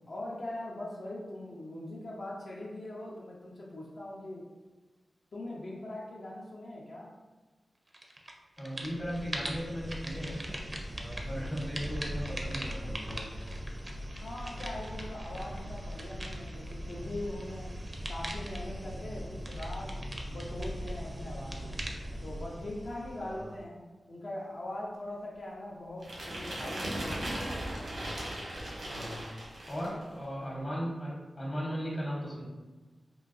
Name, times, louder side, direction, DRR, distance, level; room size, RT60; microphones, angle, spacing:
voice 1, 0.1-4.5 5.3-7.1 14.2-17.7 18.1-21.8 22.2-23.8 24.1-27.4 29.8-29.9, left 1 dB, 70° left, -5 dB, 0.5 m, -41 dB
sound 1, 7.9-8.3 8.6-23.6, equal, 30° right, 0.4 m, -39 dB
voice 2, 8.6-10.4 10.9-13.3 23.2-23.5 28.9-29.2 29.7-32.4, equal, 45° left, -6 dB, 0.8 m, -37 dB
sound 2, 26.0-30.0, right 1 dB, 85° right, 0.9 m, -37 dB
3.7 x 2.3 x 2.5 m, 1.3 s
wide cardioid pair, 85°, 0 cm